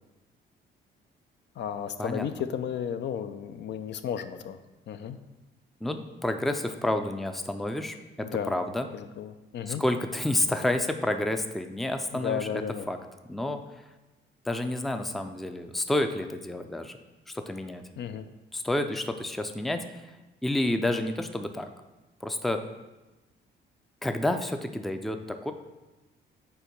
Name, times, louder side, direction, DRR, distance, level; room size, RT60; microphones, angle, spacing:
voice 1, 1.6-4.6 4.9-5.2 8.2-8.5 8.9-9.8 12.1-12.9 18.0-18.2, left 8 dB, 60° left, 9 dB, 0.4 m, -33 dB
voice 2, 5.8-8.9 9.7-12.5 12.9-13.0 13.3-13.6 14.5-17.0 17.3-17.8 18.5-20.1 20.4-21.7 22.2-22.6 24.0-25.5, left 1 dB, ahead, 7 dB, 0.4 m, -29 dB
4.6 x 4.3 x 5.2 m, 1.1 s
cardioid pair, 90°, 20 cm